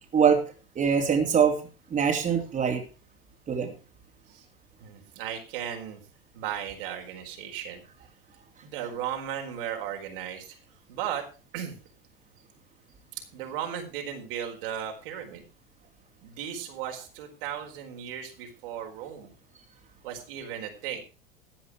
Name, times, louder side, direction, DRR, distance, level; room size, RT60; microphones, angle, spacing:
voice 1, 0.1-0.4 0.7-1.6 1.9-2.8 3.5-3.7, right 7 dB, 25° right, 3 dB, 3.0 m, -23 dB
voice 2, 4.8-6.0 6.3-7.8 8.6-10.6 10.9-11.2 11.5-11.8 13.1-15.4 16.2-19.3 20.0-21.0, right 9 dB, 65° right, 3 dB, 4.5 m, -36 dB
15.0 x 9.3 x 4.9 m, 0.33 s
hypercardioid pair, 95°, 29 cm